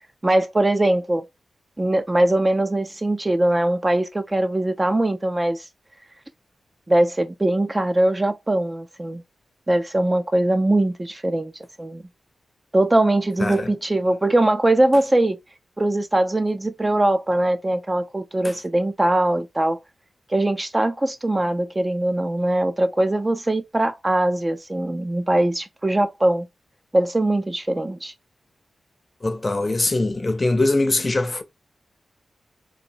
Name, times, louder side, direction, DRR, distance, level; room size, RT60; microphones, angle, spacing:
voice 1, 0.2-1.3 1.8-5.7 6.9-9.2 9.7-11.5 11.8-12.0 12.7-15.4 15.8-19.8 20.3-26.5 26.9-28.1, right 1 dB, 20° right, 0.4 m, -21 dB
voice 2, 29.2-31.4, left 2 dB, 25° left, 0.6 m, -22 dB
4.0 x 2.6 x 2.6 m
wide cardioid pair, 130°, 0 cm